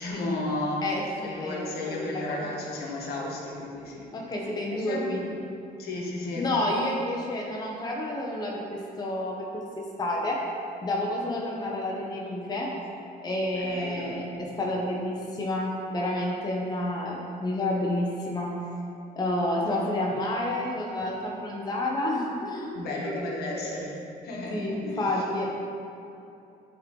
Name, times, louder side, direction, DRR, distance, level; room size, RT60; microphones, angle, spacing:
voice 1, 0.0-4.1 4.4-5.1 5.8-6.5 13.5-14.2 19.7-19.8 22.7-24.0 24.2-25.1, left 2 dB, 70° left, -3 dB, 1.3 m, -34 dB
voice 2, 0.8-2.6 4.1-5.4 6.4-9.5 10.0-10.4 10.8-12.7 13.2-18.5 19.2-23.7 24.5-25.5, left 1 dB, 25° left, -2 dB, 0.8 m, -30 dB
8.5 x 3.8 x 3.7 m, 2.7 s
cardioid pair, 110°, 17 cm